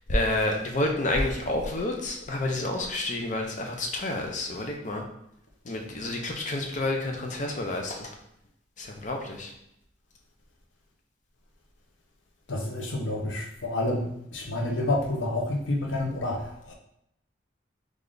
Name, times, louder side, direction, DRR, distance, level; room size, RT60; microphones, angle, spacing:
voice 1, 0.1-5.0 5.6-8.1 8.8-9.5, left 2 dB, 40° left, 2 dB, 0.6 m, -29 dB
voice 2, 12.5-16.7, left 1 dB, 85° left, 1 dB, 0.7 m, -29 dB
3.3 x 2.5 x 3.8 m, 0.77 s
head